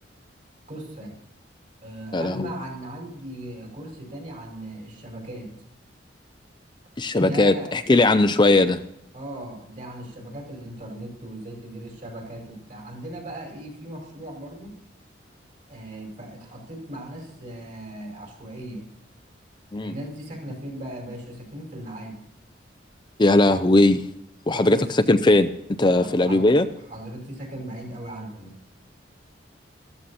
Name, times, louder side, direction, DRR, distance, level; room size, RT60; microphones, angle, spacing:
voice 1, 0.7-1.2 1.8-5.5 7.2-7.7 9.1-14.7 15.7-18.8 19.8-22.2 24.5-24.8 25.9-26.5 26.9-28.6, right 1 dB, 45° right, 1 dB, 5.1 m, -38 dB
voice 2, 2.1-2.5 7.0-8.8 19.7-19.9 23.2-24.1 24.5-25.5 25.8-26.7, left 2 dB, 25° left, 9 dB, 0.6 m, -18 dB
14.0 x 14.0 x 4.2 m, 0.81 s
head